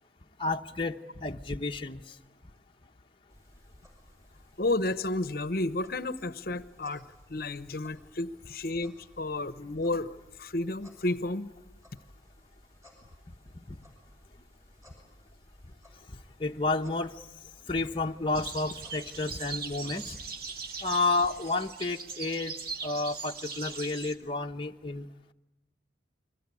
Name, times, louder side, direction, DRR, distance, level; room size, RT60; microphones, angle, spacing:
voice 1, 0.4-2.0 13.7-13.8 16.4-17.2 17.7-20.2 20.8-22.5 22.8-25.1, left 3 dB, 25° left, 2 dB, 0.9 m, -31 dB
sound 1, 3.3-21.7, left 1 dB, 15° right, 7.8 m, -58 dB
voice 2, 4.6-7.0 7.3-11.5, left 2 dB, 50° left, 15 dB, 0.9 m, -32 dB
sound 2, 18.3-24.2, right 5 dB, 55° right, 1.8 m, -40 dB
29.5 x 22.5 x 8.4 m, 0.97 s
head